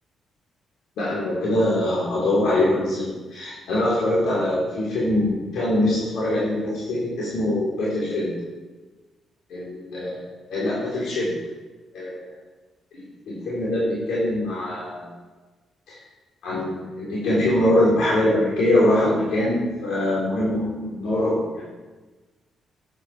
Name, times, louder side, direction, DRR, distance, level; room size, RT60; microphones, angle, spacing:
voice 1, 1.0-8.3 9.5-11.3 11.9-12.3 12.9-15.1 15.9-16.0 16.4-21.7, left 1 dB, 85° left, -7 dB, 3.8 m, -23 dB
13.0 x 9.9 x 5.0 m, 1.3 s
cardioid pair, 110°, 0 cm